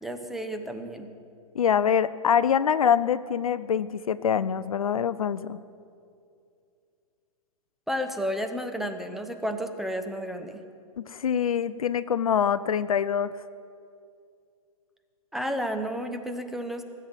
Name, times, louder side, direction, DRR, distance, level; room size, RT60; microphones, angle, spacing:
voice 1, 0.0-1.1 7.9-10.6 15.3-16.8, equal, ahead, 6 dB, 0.9 m, -32 dB
voice 2, 1.6-5.6 11.0-13.3, left 8 dB, 70° left, 16 dB, 0.5 m, -24 dB
18.0 x 7.5 x 8.1 m, 2.4 s
figure-of-eight pair, 110°, 19 cm